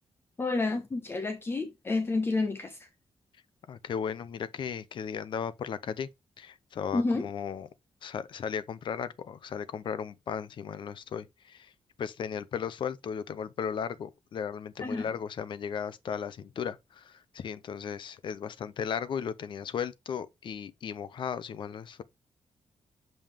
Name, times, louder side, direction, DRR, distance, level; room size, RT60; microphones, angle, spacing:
voice 1, 0.4-2.8 6.9-7.2 14.8-15.1, left 3 dB, 25° left, 0.9 m, -29 dB
voice 2, 3.7-6.1 6.4-7.7 8.0-11.7 12.0-22.0, left 7 dB, 55° left, 0.6 m, -36 dB
7.3 x 5.5 x 3.4 m
wide cardioid pair, 180°, 10 cm